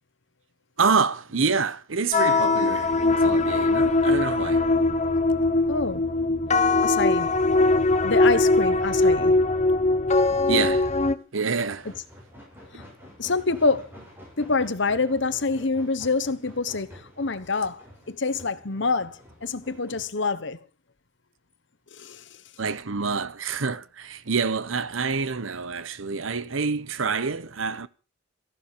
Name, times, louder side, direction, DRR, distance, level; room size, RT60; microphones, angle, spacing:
voice 1, 0.8-4.7 10.5-10.9 11.3-11.9 22.6-27.9, right 5 dB, 80° right, 1.0 m, -27 dB
sound 1, 2.1-11.2, left 2 dB, 35° left, 1.0 m, -21 dB
voice 2, 5.7-6.0 6.8-7.3 8.0-9.4 12.7-12.8 13.2-13.9 14.4-20.6 21.9-22.2, left 4 dB, 65° left, 1.1 m, -26 dB
sound 2, 11.6-20.1, equal, 10° right, 7.2 m, -48 dB
15.0 x 11.5 x 6.8 m
head